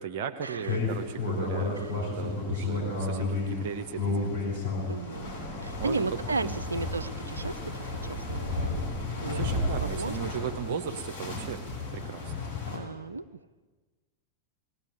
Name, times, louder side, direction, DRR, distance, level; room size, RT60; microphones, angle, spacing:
voice 1, 0.0-4.4 5.8-6.1 6.4-6.6 9.2-11.6 11.9-12.3, right 7 dB, 50° right, 5 dB, 1.0 m, -37 dB
sound 1, 0.6-12.8, left 2 dB, 75° left, 7.4 m, -32 dB
voice 2, 4.8-5.4 5.6-8.8 9.2-9.4 9.7-10.3 12.7-13.4, right 3 dB, 75° right, 14 dB, 0.6 m, -35 dB
19.5 x 18.0 x 9.2 m, 1.4 s
figure-of-eight pair, 90°, 0 cm